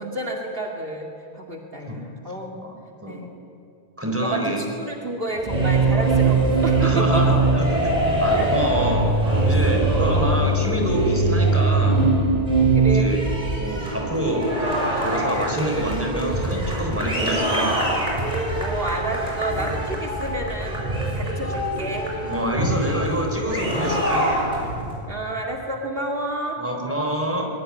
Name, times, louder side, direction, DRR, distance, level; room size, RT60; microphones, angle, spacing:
voice 1, 0.0-2.6 3.1-3.3 4.2-7.2 8.3-8.6 12.7-13.1 18.6-20.8 21.1-22.3 25.1-26.6, right 1 dB, 60° right, 0 dB, 2.6 m, -30 dB
voice 2, 4.0-4.6 6.8-7.7 8.2-9.1 9.4-12.0 12.9-13.2 13.6-14.4 15.0-17.7 22.3-24.3 26.6-27.5, right 1 dB, 10° right, 1 dB, 4.4 m, -26 dB
sound 1, 5.3-24.9, right 2 dB, 35° right, 6.7 m, -22 dB
22.5 x 22.0 x 10.0 m, 2.6 s
omnidirectional pair, 1.1 m